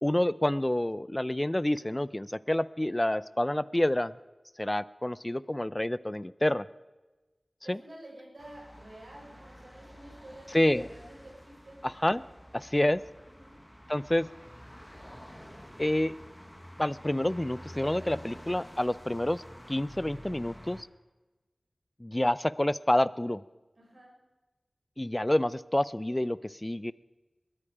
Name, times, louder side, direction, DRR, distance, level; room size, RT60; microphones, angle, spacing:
voice 1, 0.0-4.1 4.6-6.7 7.7-7.8 10.5-10.9 11.8-12.2 12.5-13.0 13.9-14.3 15.8-16.1 16.8-20.9 22.0-23.4 25.0-26.9, left 1 dB, 20° left, 19 dB, 0.5 m, -28 dB
voice 2, 7.6-11.8 13.2-13.5 23.8-24.1, right 1 dB, 75° right, -2 dB, 6.5 m, -50 dB
sound 1, 8.4-20.8, equal, 5° left, 1.6 m, -49 dB
21.0 x 13.5 x 5.0 m, 1.2 s
wide cardioid pair, 45°, 0 cm